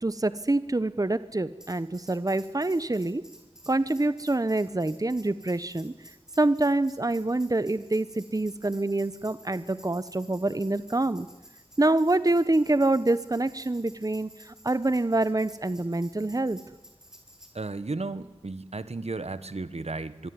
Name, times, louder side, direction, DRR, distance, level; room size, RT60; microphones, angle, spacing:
voice 1, 0.0-3.2 3.7-5.9 6.4-11.3 11.8-16.6, right 2 dB, 35° right, 14 dB, 1.0 m, -26 dB
Tambourine, 1.6-17.5, equal, 5° right, 6.3 m, -53 dB
voice 2, 17.5-20.3, right 3 dB, 75° right, 13 dB, 1.3 m, -34 dB
24.5 x 23.0 x 9.7 m, 1.0 s
wide cardioid pair, 50°, 11 cm